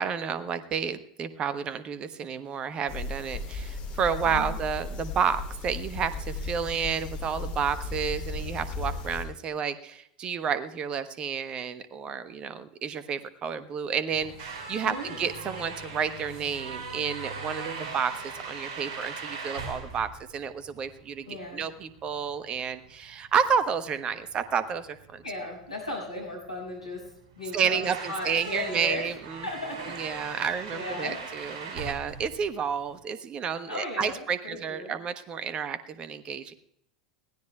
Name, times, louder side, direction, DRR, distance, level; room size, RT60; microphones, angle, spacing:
voice 1, 0.0-25.2 27.5-29.5 29.9-36.5, right 7 dB, 30° right, 13 dB, 1.1 m, -31 dB
sound 1, 2.9-9.3, left 3 dB, 35° left, 3.2 m, -35 dB
voice 2, 4.2-4.6 14.8-15.3 21.3-21.7 25.2-29.2 29.4-29.9 30.4-31.2 33.7-34.9, left 2 dB, 80° left, -1 dB, 6.6 m, -36 dB
sound 2, 14.1-33.0, right 4 dB, 50° right, 5.0 m, -40 dB
21.5 x 16.0 x 2.3 m, 0.75 s
figure-of-eight pair, 85°, 3 cm